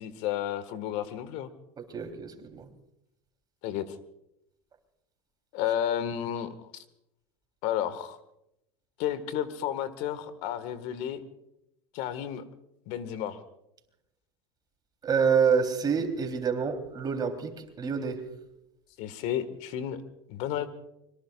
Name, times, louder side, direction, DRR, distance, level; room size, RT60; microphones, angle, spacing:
voice 1, 0.0-1.5 3.6-4.0 5.5-6.8 7.6-8.2 9.0-11.2 11.9-12.4 12.9-13.4 19.0-20.0 20.3-20.7, left 10 dB, 60° left, 1.7 m, -32 dB
voice 2, 1.8-2.7 15.0-18.2, right 6 dB, 30° right, 3.6 m, -27 dB
25.0 x 23.0 x 2.5 m
hypercardioid pair, 100°, 13 cm